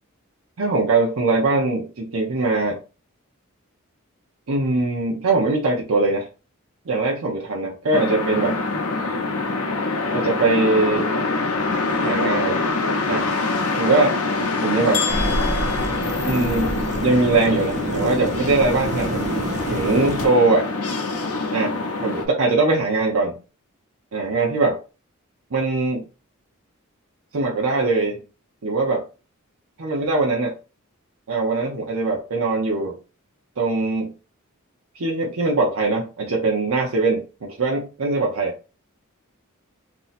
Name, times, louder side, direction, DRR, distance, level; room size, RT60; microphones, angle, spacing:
voice 1, 0.6-2.8 4.5-6.3 6.9-8.6 10.1-11.1 12.0-12.6 13.1-13.3 13.8-14.2 14.6-15.0 16.2-19.2 19.7-20.7 21.5-23.4 24.1-24.8 25.5-26.0 27.3-28.2 28.6-29.0 29.8-30.5 31.3-33.0 33.6-34.1 34.9-38.5, right 3 dB, 75° right, -1 dB, 0.6 m, -21 dB
sound 1, 7.9-22.3, left 3 dB, 80° left, 0.6 m, -25 dB
sound 2, 14.9-16.9, left 6 dB, 45° left, 0.9 m, -31 dB
sound 3, 15.1-20.3, right 2 dB, 35° right, 0.3 m, -28 dB
2.7 x 2.0 x 3.9 m, 0.32 s
head